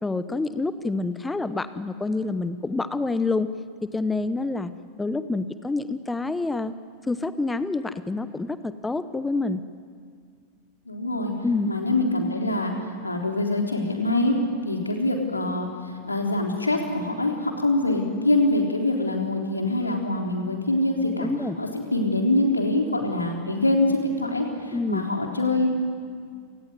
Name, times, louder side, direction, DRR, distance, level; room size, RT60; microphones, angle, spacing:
voice 1, 0.0-3.5 3.9-4.7 5.0-6.7 7.0-9.6 11.4-11.7 21.2-21.6 24.7-25.0, left 3 dB, 10° left, 13 dB, 0.8 m, -27 dB
voice 2, 10.9-11.3 11.7-12.7 13.0-14.4 14.6-15.7 16.0-21.3 21.6-25.7, left 2 dB, 80° left, 2 dB, 3.6 m, -24 dB
29.0 x 18.5 x 9.6 m, 2.1 s
figure-of-eight pair, 90°, 0 cm